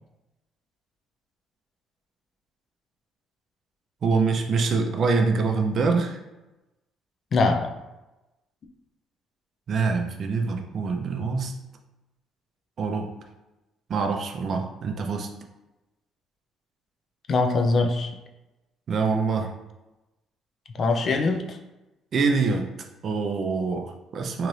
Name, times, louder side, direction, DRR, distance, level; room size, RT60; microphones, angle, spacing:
voice 1, 4.0-6.2 9.7-11.6 12.8-13.1 13.9-15.3 18.9-19.5 22.1-22.7 23.0-24.5, right 4 dB, 55° right, 4 dB, 0.4 m, -25 dB
voice 2, 7.3-7.7 17.3-18.1 20.7-21.6, left 3 dB, 50° left, 4 dB, 0.4 m, -22 dB
2.9 x 2.5 x 3.1 m, 1.0 s
supercardioid pair, 80°, 0 cm